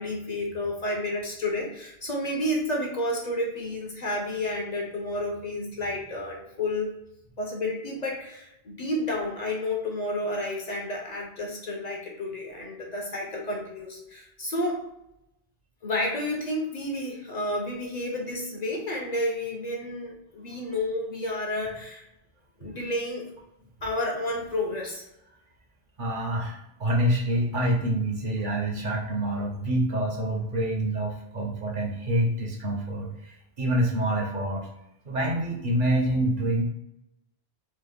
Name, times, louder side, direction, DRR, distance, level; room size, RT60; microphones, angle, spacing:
voice 1, 0.0-7.0 7.4-14.8 15.8-22.1 22.6-23.3 23.8-25.0, left 1 dB, 50° left, 0 dB, 0.6 m, -31 dB
voice 2, 26.0-34.7 35.1-36.6, right 1 dB, 55° right, 0 dB, 0.8 m, -26 dB
3.1 x 2.0 x 3.4 m, 0.86 s
omnidirectional pair, 1.0 m